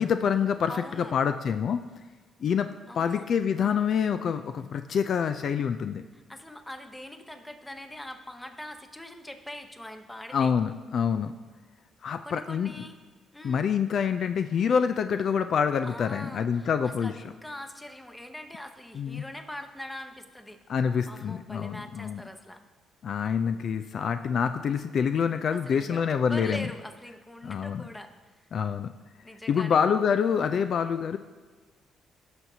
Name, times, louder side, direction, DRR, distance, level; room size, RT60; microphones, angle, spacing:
voice 1, 0.0-1.8 2.4-2.7 3.0-6.0 10.3-11.3 12.0-12.7 13.4-17.1 18.9-19.2 20.7-22.2 23.0-26.7 27.4-27.8 28.5-28.9 29.5-31.2, left 7 dB, 60° left, 9 dB, 0.3 m, -26 dB
voice 2, 0.7-1.1 2.9-3.3 6.1-10.5 12.2-13.0 13.3-13.6 15.8-16.7 17.0-20.6 21.1-22.7 25.7-28.5 29.2-29.8, left 1 dB, 10° left, 6 dB, 0.8 m, -42 dB
16.0 x 6.1 x 2.7 m, 1.4 s
cardioid pair, 90°, 0 cm